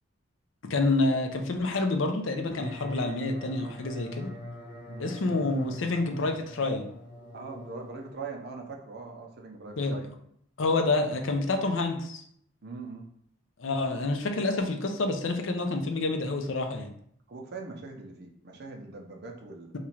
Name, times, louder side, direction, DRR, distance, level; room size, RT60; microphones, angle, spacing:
voice 1, 0.7-4.3 5.0-6.9 9.8-10.0 10.6-12.2 13.6-16.9, left 2 dB, 70° left, 5 dB, 0.5 m, -28 dB
sound 1, 2.5-8.1, left 1 dB, 10° right, 1.0 m, -43 dB
voice 2, 7.3-10.0 12.6-13.1 17.3-19.7, right 4 dB, 55° right, 2 dB, 0.6 m, -41 dB
2.9 x 2.4 x 4.3 m, 0.67 s
head